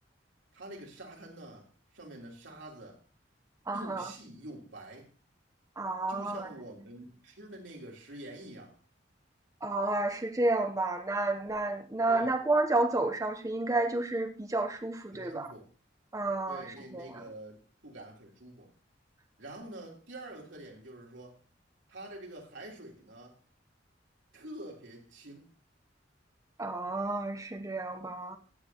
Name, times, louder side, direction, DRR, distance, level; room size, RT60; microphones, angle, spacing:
voice 1, 0.5-3.0 3.7-5.1 6.1-8.8 12.1-12.3 15.1-15.7 16.5-18.7 19.4-21.4 21.9-23.4 24.3-25.5, right 1 dB, 85° right, 3.5 m, -47 dB
voice 2, 3.7-4.1 5.8-6.5 9.6-15.5 16.1-17.2 26.6-28.4, right 2 dB, 20° right, 0.8 m, -31 dB
16.0 x 9.1 x 2.9 m
head